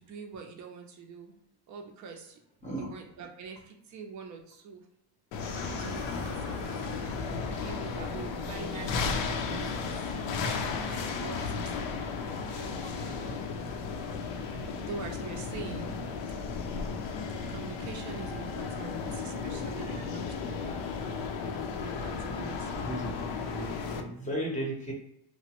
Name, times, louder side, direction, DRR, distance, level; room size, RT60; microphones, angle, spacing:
voice 1, 0.0-1.4 1.7-2.4 2.8-4.8 5.6-6.6 7.5-9.9 10.9-11.8 12.4-13.5 14.4-15.9 17.5-20.8 21.8-22.9, right 5 dB, 40° right, 2 dB, 0.5 m, -44 dB
sound 1, 5.3-24.0, left 5 dB, 65° left, 0.6 m, -34 dB
sound 2, 5.4-14.0, equal, 10° right, 0.8 m, -49 dB
voice 2, 12.9-13.3 14.3-14.5 19.8-20.1 20.7-21.2 22.8-23.2 23.4-24.9, right 1 dB, 15° left, -2 dB, 0.7 m, -37 dB
3.0 x 2.0 x 2.9 m, 0.77 s
cardioid pair, 150°, 48 cm